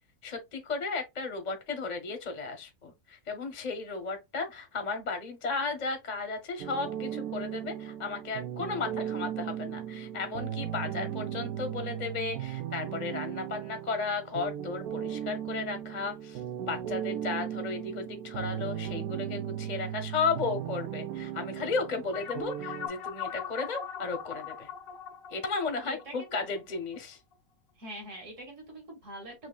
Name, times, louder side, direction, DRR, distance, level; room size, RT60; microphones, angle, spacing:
voice 1, 0.2-24.7 25.3-27.2, left 4 dB, 40° left, 0.7 m, -34 dB
sound 1, 6.6-22.9, right 10 dB, 85° right, 1.1 m, -37 dB
sound 2, 22.1-27.0, left 9 dB, 75° left, 1.1 m, -40 dB
voice 2, 25.8-26.3 27.8-29.5, right 1 dB, 60° right, 2.4 m, -44 dB
6.1 x 2.7 x 2.2 m
omnidirectional pair, 1.5 m